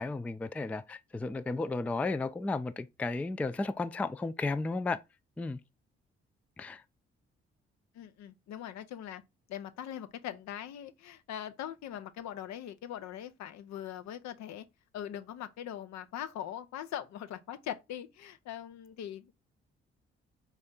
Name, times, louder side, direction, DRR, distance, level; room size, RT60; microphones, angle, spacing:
voice 1, 0.0-5.0 5.4-5.6 6.6-6.8, left 3 dB, 5° left, 0.3 m, -33 dB
voice 2, 7.9-9.2 9.5-14.6 14.9-19.3, left 10 dB, 65° left, 0.6 m, -41 dB
4.2 x 2.4 x 3.7 m
hypercardioid pair, 45°, 30 cm